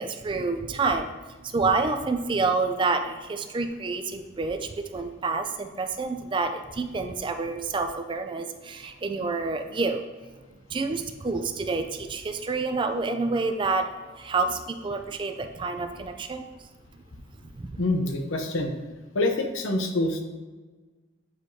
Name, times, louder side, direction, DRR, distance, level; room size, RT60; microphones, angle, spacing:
voice 1, 0.0-10.0 10.7-17.0 17.5-17.8, right 3 dB, 25° right, 6 dB, 0.3 m, -28 dB
voice 2, 17.8-18.7 19.1-20.2, left 2 dB, 85° left, 4 dB, 0.8 m, -26 dB
8.0 x 4.8 x 2.7 m, 1.3 s
head